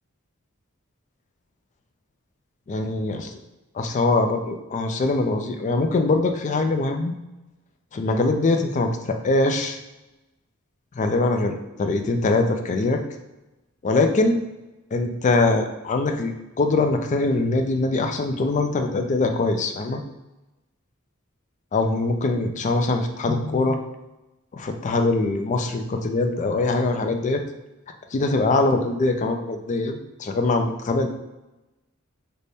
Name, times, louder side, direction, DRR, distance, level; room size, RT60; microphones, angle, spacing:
voice 1, 2.7-3.3 3.7-7.1 7.9-9.8 11.0-13.0 13.8-14.4 14.9-20.0 21.7-23.8 24.5-27.4 28.1-31.1, left 3 dB, 35° left, 5 dB, 0.3 m, -22 dB
4.0 x 2.1 x 3.4 m, 1.0 s
head